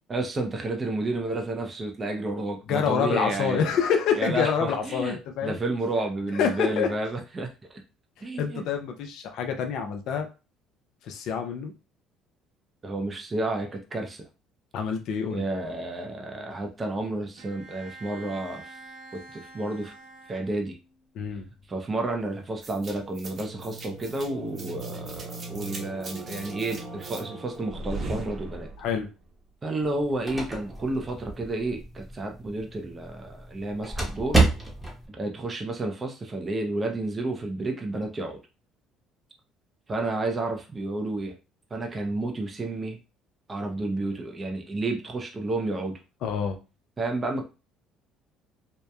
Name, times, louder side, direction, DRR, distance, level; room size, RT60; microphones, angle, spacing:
voice 1, 0.1-3.7 4.2-5.2 5.4-7.8 8.2-8.6 12.8-14.2 15.3-18.8 19.1-19.9 20.3-20.8 21.7-28.7 29.6-34.4 35.2-38.4 39.9-41.4 41.7-43.0 43.5-46.0 47.0-47.4, right 2 dB, 25° right, 3 dB, 0.5 m, -31 dB
voice 2, 2.7-5.6 6.3-6.9 8.2-10.3 11.0-11.7 14.7-15.5 21.1-21.4 28.8-29.1 46.2-46.6, left 7 dB, 70° left, 5 dB, 0.5 m, -27 dB
Bowed string instrument, 17.4-21.0, right 3 dB, 90° right, 0.9 m, -47 dB
sound 1, 22.6-29.0, right 2 dB, 45° right, 0.9 m, -38 dB
sound 2, 29.8-35.1, right 3 dB, 5° right, 0.9 m, -29 dB
2.8 x 2.1 x 2.2 m, 0.31 s
supercardioid pair, 90°, 0 cm